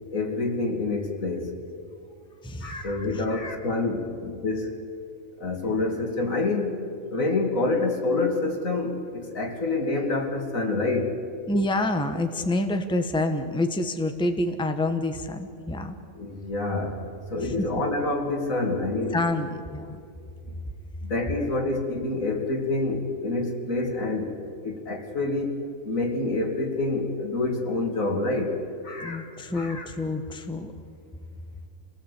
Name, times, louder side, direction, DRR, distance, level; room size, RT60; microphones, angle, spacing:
voice 1, 0.1-1.5 2.6-4.7 5.4-11.2 16.1-19.3 20.5-20.6 21.0-24.4 24.6-28.6 28.8-29.3 29.5-29.9, left 2 dB, 75° left, 2 dB, 2.9 m, -27 dB
voice 2, 2.4-3.2 11.5-16.0 17.4-17.7 19.1-20.0 29.0-30.7, left 2 dB, 5° left, 7 dB, 1.1 m, -28 dB
26.5 x 18.5 x 8.4 m, 2.5 s
omnidirectional pair, 1.4 m